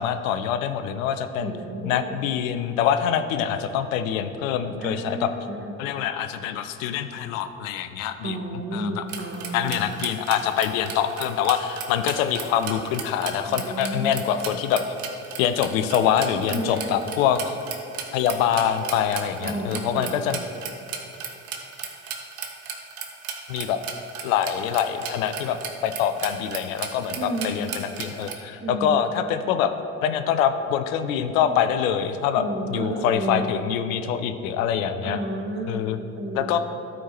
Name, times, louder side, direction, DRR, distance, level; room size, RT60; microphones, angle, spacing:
voice 1, 0.0-1.5 1.8-5.3 5.8-9.0 9.5-14.8 15.4-17.5 18.1-20.4 23.5-23.8 24.2-29.7 30.0-35.2 35.7-36.0 36.3-36.6, left 9 dB, 75° left, 9 dB, 0.6 m, -25 dB
voice 2, 1.4-2.2 4.8-5.7 8.2-9.8 13.5-14.2 16.1-17.0 19.4-20.2 27.1-27.7 28.6-29.3 31.0-31.5 32.3-33.4 35.0-35.8 36.1-36.6, right 1 dB, 30° right, 3 dB, 1.3 m, -32 dB
sound 1, 9.1-28.3, right 7 dB, 65° right, 1.0 m, -35 dB
12.0 x 4.6 x 4.4 m, 2.8 s
figure-of-eight pair, 50°, 41 cm